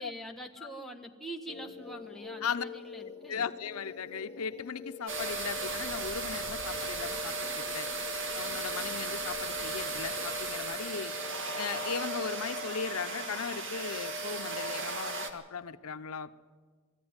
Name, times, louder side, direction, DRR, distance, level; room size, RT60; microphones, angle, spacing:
voice 1, 0.0-3.5, right 1 dB, ahead, 1 dB, 1.4 m, -44 dB
sound 1, 1.5-14.9, left 5 dB, 30° left, 1.2 m, -48 dB
voice 2, 3.3-7.9 8.3-11.1 11.5-16.3, left 6 dB, 85° left, 10 dB, 0.7 m, -37 dB
sound 2, 5.1-15.3, right 2 dB, 60° right, 1.9 m, -36 dB
20.0 x 14.0 x 9.6 m, 1.5 s
head